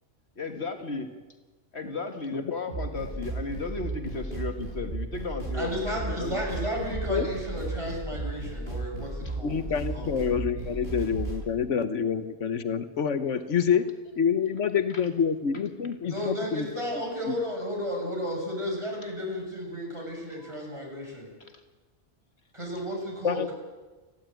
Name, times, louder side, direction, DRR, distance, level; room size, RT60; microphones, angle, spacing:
voice 1, 0.4-1.1 1.7-6.4 9.2-9.4 20.4-21.0 21.4-21.6, left 3 dB, 60° left, 6 dB, 1.9 m, -35 dB
sound 1, 2.7-11.4, right 2 dB, 55° right, 7.7 m, -34 dB
voice 2, 5.5-9.6 9.9-10.2 16.1-21.3 22.5-23.5, equal, 25° right, -1 dB, 7.1 m, -33 dB
voice 3, 9.4-13.9 14.2-16.7 17.3-17.4 23.2-23.5, left 7 dB, 85° left, 11 dB, 1.4 m, -27 dB
29.5 x 11.5 x 9.1 m, 1.2 s
omnidirectional pair, 1.2 m